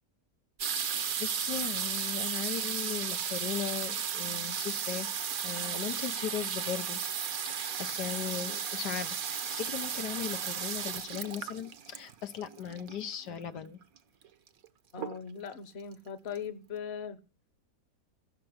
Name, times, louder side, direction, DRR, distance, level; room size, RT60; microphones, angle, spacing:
sound 1, 0.6-13.1 14.0-14.1 14.2-14.6 15.0-15.5 16.1-16.2 16.4-16.5, right 7 dB, 60° right, 1.4 m, -34 dB
voice 1, 0.8-5.1 5.4-13.8, left 9 dB, 80° left, 1.7 m, -38 dB
voice 2, 14.9-17.2, left 7 dB, 45° left, 1.3 m, -39 dB
14.5 x 12.0 x 8.0 m
omnidirectional pair, 1.8 m